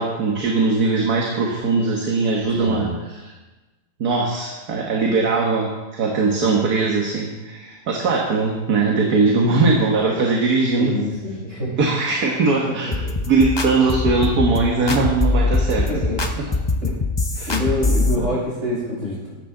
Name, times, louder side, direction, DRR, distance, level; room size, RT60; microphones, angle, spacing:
voice 1, 0.0-2.9 3.2-3.3 4.0-10.9 11.8-12.9 13.3-15.9 16.4-16.5 17.4-17.6 18.2-18.3, right 3 dB, 65° right, 0 dB, 1.9 m, -20 dB
voice 2, 2.5-2.9 10.8-11.7 12.6-13.1 15.9-16.2 16.8-17.0 17.5-19.3, left 1 dB, 45° right, -6 dB, 6.2 m, -26 dB
sound 1, 12.9-18.2, left 3 dB, 40° left, 0.3 m, -22 dB
15.5 x 12.5 x 3.8 m, 1.1 s
omnidirectional pair, 1.8 m